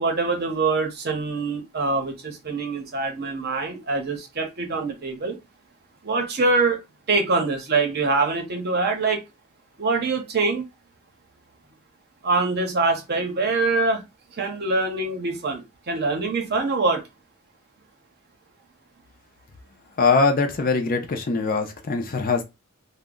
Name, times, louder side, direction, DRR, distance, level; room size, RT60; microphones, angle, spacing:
voice 1, 0.0-5.4 6.0-6.8 7.1-9.2 9.8-10.6 12.2-14.0 14.4-17.0, right 3 dB, 45° right, 0.7 m, -24 dB
voice 2, 20.0-22.4, left 4 dB, 40° left, 0.4 m, -22 dB
2.1 x 2.0 x 3.6 m
head